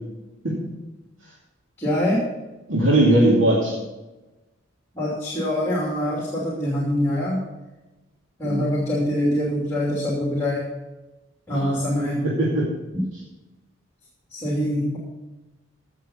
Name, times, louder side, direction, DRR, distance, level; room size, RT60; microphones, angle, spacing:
voice 1, 1.8-2.3 4.9-7.4 8.4-10.7 11.5-12.3 14.3-15.0, left 1 dB, 15° left, -4 dB, 2.7 m, -24 dB
voice 2, 2.7-3.8 8.4-8.6 11.5-11.8 12.2-12.7, right 1 dB, 85° right, -5 dB, 2.5 m, -19 dB
16.0 x 6.7 x 5.5 m, 1.1 s
head